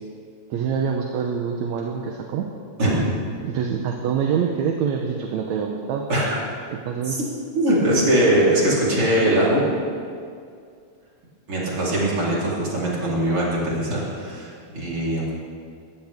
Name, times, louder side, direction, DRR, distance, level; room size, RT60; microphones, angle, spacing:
voice 1, 0.5-2.5 3.4-6.1 6.7-7.2, right 7 dB, 75° right, 2 dB, 2.2 m, -25 dB
voice 2, 2.8-3.1 6.1-6.3 7.1-7.2 7.6-9.6 11.5-15.3, right 1 dB, 45° right, -6 dB, 4.7 m, -21 dB
22.0 x 15.5 x 3.6 m, 2.2 s
omnidirectional pair, 3.4 m